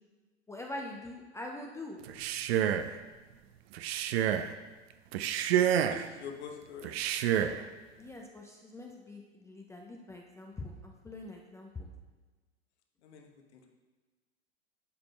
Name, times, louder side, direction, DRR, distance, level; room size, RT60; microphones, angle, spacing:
voice 1, 0.5-2.0 8.0-11.9, left 2 dB, 10° left, 0 dB, 0.4 m, -44 dB
Male speech man speaking, 2.0-2.9 3.7-4.5 5.1-6.1 6.8-7.6, right 10 dB, 60° right, 0.5 m, -29 dB
voice 2, 5.7-7.0 13.0-13.7, left 6 dB, 70° left, 3 dB, 1.1 m, -46 dB
11.5 x 5.1 x 2.3 m, 1.3 s
hypercardioid pair, 90°, 35 cm